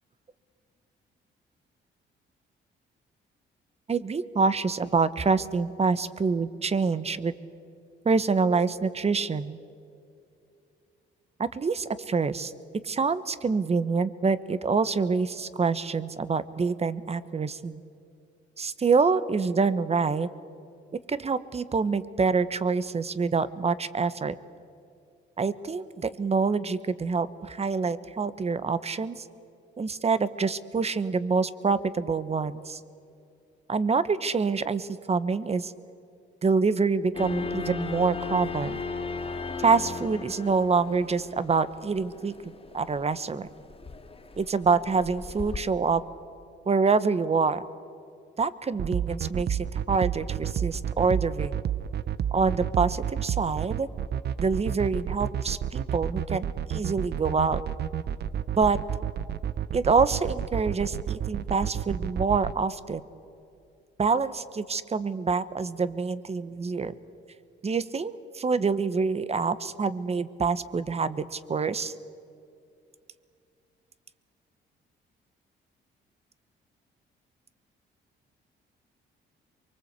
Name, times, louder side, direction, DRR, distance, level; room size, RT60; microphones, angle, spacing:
voice 1, 3.9-7.3 8.0-9.6 11.4-12.5 12.8-17.8 18.6-20.3 21.1-24.3 25.4-29.2 29.8-32.8 33.7-35.7 36.4-38.8 39.6-42.3 42.7-43.5 44.4-46.0 46.7-47.6 48.4-51.5 52.3-53.9 54.4-56.4 56.7-57.6 58.6-58.8 59.7-63.0 64.0-66.9 67.6-71.9, right 4 dB, 30° right, 15 dB, 1.2 m, -26 dB
sound 1, 37.1-45.6, left 4 dB, 30° left, 2.8 m, -37 dB
sound 2, 48.7-62.5, right 9 dB, 55° right, 0.8 m, -30 dB
24.0 x 23.5 x 8.3 m, 2.5 s
cardioid pair, 90°, 20 cm